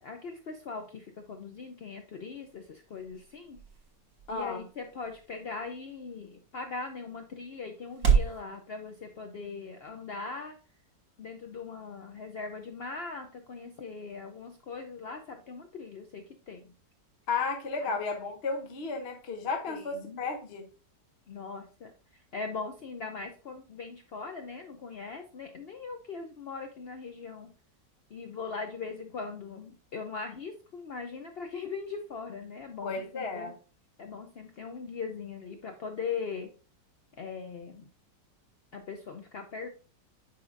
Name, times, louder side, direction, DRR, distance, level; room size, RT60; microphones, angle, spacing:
voice 1, 0.0-3.6 4.3-10.6 11.2-16.7 17.8-18.0 19.7-20.2 21.3-27.5 28.1-33.5 34.0-36.5 37.2-37.9 38.7-39.7, left 4 dB, 70° left, 5 dB, 0.5 m, -40 dB
sound 1, 2.1-8.4, right 6 dB, 75° right, 2.3 m, -33 dB
voice 2, 4.3-4.6 17.3-20.7 32.8-33.5, left 4 dB, 45° left, 4 dB, 0.9 m, -33 dB
9.5 x 5.1 x 2.6 m, 0.35 s
omnidirectional pair, 1.9 m